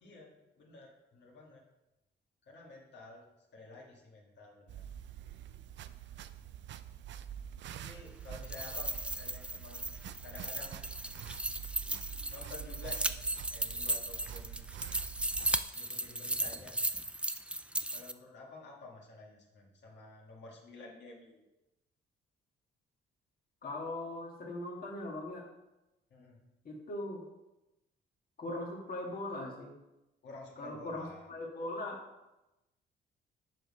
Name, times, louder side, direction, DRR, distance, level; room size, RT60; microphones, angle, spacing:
voice 1, 0.0-1.6 2.5-3.3 3.5-4.8 7.7-9.9 10.2-10.8 12.3-13.1 13.5-14.7 15.7-16.8 17.9-21.4 26.1-26.4 30.2-31.3, left 2 dB, 65° left, -2 dB, 1.9 m, -51 dB
sound 1, 4.7-15.6, right 9 dB, 65° right, 0.5 m, -46 dB
sound 2, 8.3-18.1, right 1 dB, 5° right, 0.4 m, -36 dB
voice 2, 23.6-25.5 26.7-27.2 28.4-29.7 30.6-32.0, left 1 dB, 45° left, -2 dB, 1.8 m, -40 dB
7.5 x 5.2 x 5.4 m, 0.96 s
cardioid pair, 90°, 20 cm